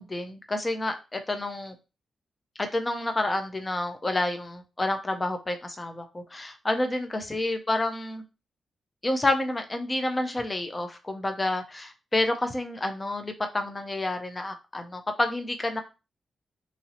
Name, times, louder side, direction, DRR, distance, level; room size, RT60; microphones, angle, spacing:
voice 1, 0.0-1.8 2.6-8.2 9.0-15.8, left 2 dB, 20° left, 6 dB, 0.3 m, -29 dB
2.9 x 2.6 x 2.7 m, 0.29 s
wide cardioid pair, 165°, 0 cm